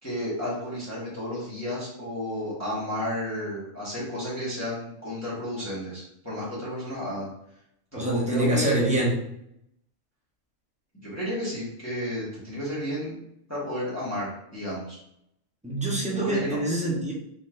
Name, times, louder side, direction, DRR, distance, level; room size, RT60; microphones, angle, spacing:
voice 1, 0.0-7.3 7.9-8.8 11.0-13.2 13.5-15.0 16.1-16.6, equal, 10° left, -9 dB, 1.6 m, -32 dB
voice 2, 8.0-9.2 15.6-17.1, right 1 dB, 5° right, -4 dB, 0.8 m, -25 dB
4.4 x 4.1 x 2.5 m, 0.76 s
omnidirectional pair, 1.4 m